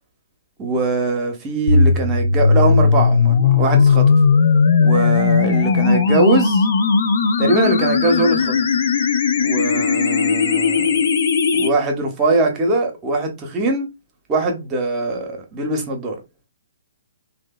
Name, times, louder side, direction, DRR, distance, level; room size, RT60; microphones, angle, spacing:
voice 1, 0.6-4.2 4.8-6.7 7.4-8.6 9.4-11.1 11.5-13.9 14.3-16.2, right 2 dB, 25° right, 0.7 m, -21 dB
sound 1, 1.7-11.7, left 5 dB, 60° left, 0.4 m, -17 dB
2.6 x 2.1 x 2.3 m
figure-of-eight pair, 125°, 0 cm